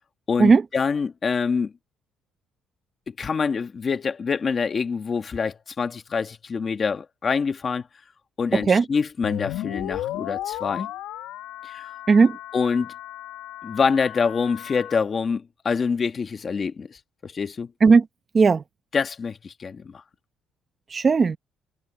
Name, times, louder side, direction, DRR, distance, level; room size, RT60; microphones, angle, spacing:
voice 1, 0.3-1.7 3.1-7.9 8.4-10.9 11.6-11.9 12.5-12.9 13.6-17.7 18.9-20.0, left 5 dB, 30° left, 1.4 m, -26 dB
voice 2, 8.5-8.8 12.1-12.4 17.8-18.0 18.3-18.6 20.9-21.4, right 4 dB, 25° right, 0.8 m, -16 dB
sound 1, 9.2-15.0, left 14 dB, 85° left, 1.1 m, -34 dB
cardioid pair, 145°, 0 cm